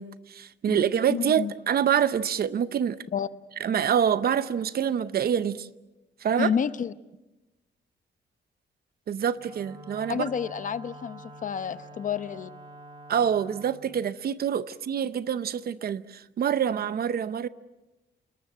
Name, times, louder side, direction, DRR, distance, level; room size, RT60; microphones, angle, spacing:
voice 1, 0.0-3.0 3.6-5.7 6.2-6.5 9.1-10.3 13.1-17.5, right 8 dB, 55° right, 0.7 m, -26 dB
voice 2, 0.7-1.5 3.1-3.3 6.4-6.9 10.1-12.5, left 7 dB, 45° left, 0.8 m, -30 dB
Wind instrument woodwind instrument, 9.3-13.8, right 1 dB, 25° right, 2.2 m, -46 dB
29.0 x 20.0 x 7.5 m
wide cardioid pair, 160°, 19 cm